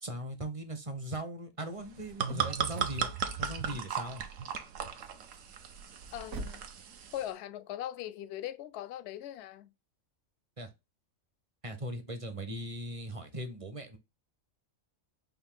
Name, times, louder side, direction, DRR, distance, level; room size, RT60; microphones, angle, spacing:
voice 1, 0.0-3.1 3.4-4.2 10.6-10.7 11.6-14.0, right 1 dB, 30° right, 0.8 m, -39 dB
sound 1, 1.8-7.3, right 7 dB, 70° right, 1.1 m, -36 dB
sound 2, 2.0-6.8, right 2 dB, 90° right, 1.3 m, -48 dB
voice 2, 6.1-6.6 7.1-9.7, left 12 dB, 65° left, 0.7 m, -40 dB
5.1 x 2.6 x 3.6 m
omnidirectional pair, 1.4 m